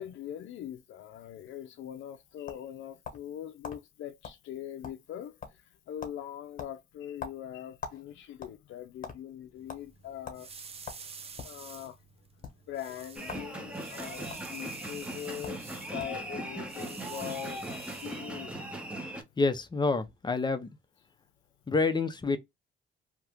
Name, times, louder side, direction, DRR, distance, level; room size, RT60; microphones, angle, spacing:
voice 1, 0.0-10.5 11.4-12.0 12.4-18.7, left 11 dB, 75° left, 0.5 m, -42 dB
sound 1, 1.9-3.3 3.6-3.8 4.2-4.4 4.7-5.2 5.4-5.7 6.0-6.2 6.6-8.0 8.3-9.2 9.7-9.8 10.2-10.4 10.8-11.6 12.3-12.5 13.2-13.5 13.8-14.4 15.1-15.2 15.4-15.6 16.0-16.2, left 6 dB, 45° left, 1.2 m, -42 dB
sound 2, 9.6-18.8, right 5 dB, 30° right, 0.5 m, -49 dB
sound 3, 13.2-19.2, right 1 dB, 5° right, 1.0 m, -39 dB
voice 2, 19.4-20.7 21.7-22.4, left 3 dB, 20° left, 0.7 m, -28 dB
2.9 x 2.4 x 3.4 m
cardioid pair, 90°, 20 cm